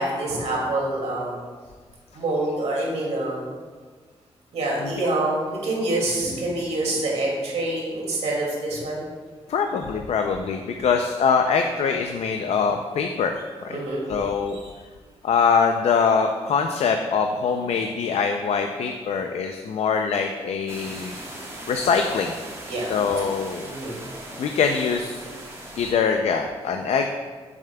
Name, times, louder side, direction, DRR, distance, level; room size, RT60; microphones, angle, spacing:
voice 1, 0.0-1.4 2.1-3.4 4.5-9.1 13.7-14.1 14.5-14.7 22.7-22.9 23.2-23.3 23.6-23.9, right 2 dB, 85° right, -3 dB, 2.3 m, -26 dB
voice 2, 4.8-5.1 9.5-13.3 13.6-13.8 14.1-14.6 15.2-21.2 21.7-22.3 22.9-23.7 24.4-25.2 25.8-27.1, left 6 dB, 75° left, 5 dB, 0.5 m, -23 dB
sound 1, 20.7-25.9, right 1 dB, 25° right, 1.4 m, -39 dB
9.9 x 7.1 x 2.3 m, 1.5 s
wide cardioid pair, 130°, 11 cm